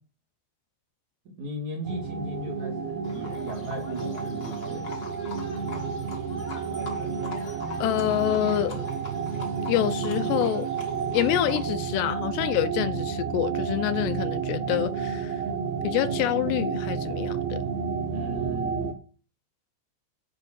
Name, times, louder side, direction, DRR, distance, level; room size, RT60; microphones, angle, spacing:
voice 1, 1.4-5.0 18.1-18.9, equal, 50° right, 3.2 m, -37 dB
sound 1, 1.8-18.9, right 6 dB, 75° right, 1.5 m, -31 dB
Livestock farm animals working animals, 3.0-11.7, left 4 dB, 40° left, 1.3 m, -43 dB
voice 2, 7.8-8.9 9.7-10.7 11.1-15.4 15.8-17.6, left 13 dB, 80° left, 2.8 m, -27 dB
10.5 x 6.0 x 8.5 m
omnidirectional pair, 5.0 m